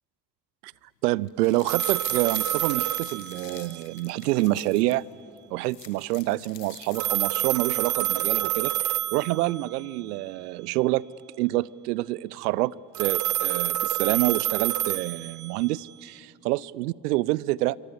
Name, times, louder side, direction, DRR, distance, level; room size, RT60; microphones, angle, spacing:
voice 1, 1.0-5.0 5.5-11.0 11.4-17.8, right 18 dB, 80° right, 24 dB, 0.6 m, -27 dB
sound 1, 1.3-5.0 5.4-5.5 5.6-7.5 7.9-8.0, left 10 dB, 85° left, 1.3 m, -45 dB
sound 2, 1.7-4.0 6.9-9.8 12.9-15.9, right 13 dB, 40° right, 0.7 m, -28 dB
27.5 x 23.5 x 6.9 m, 2.4 s
hypercardioid pair, 50°, 47 cm